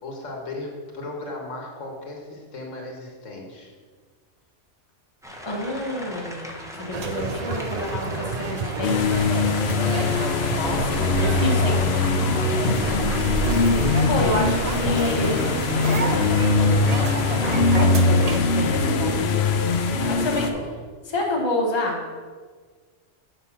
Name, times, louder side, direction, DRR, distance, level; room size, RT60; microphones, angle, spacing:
voice 1, 0.0-3.7 9.8-10.2 20.0-20.7, left 2 dB, 85° left, -1 dB, 1.8 m, -36 dB
sound 1, 5.2-18.9, equal, 5° right, 0.7 m, -39 dB
voice 2, 5.4-9.1 10.5-11.8 14.1-15.5 17.4-19.3 20.1-20.5 21.1-22.0, left 1 dB, 25° left, -1 dB, 1.2 m, -28 dB
sound 2, 6.9-18.4, right 4 dB, 50° right, 0.5 m, -29 dB
sound 3, 8.8-20.5, left 4 dB, 60° left, 0.9 m, -22 dB
6.8 x 5.5 x 5.8 m, 1.5 s
omnidirectional pair, 1.3 m